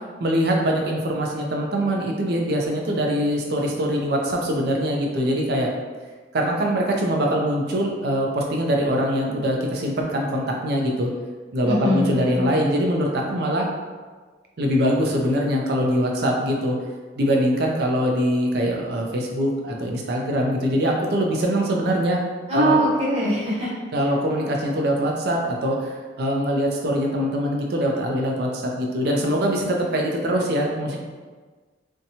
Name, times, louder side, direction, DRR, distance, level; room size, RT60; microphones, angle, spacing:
voice 1, 0.2-5.7 6.3-11.1 11.5-13.7 14.6-16.8 17.2-22.2 22.5-22.8 23.9-31.0, equal, 55° right, 0 dB, 0.4 m, -23 dB
voice 2, 11.6-12.4 22.5-23.7, right 1 dB, 35° right, -9 dB, 0.8 m, -22 dB
2.7 x 2.2 x 2.7 m, 1.4 s
head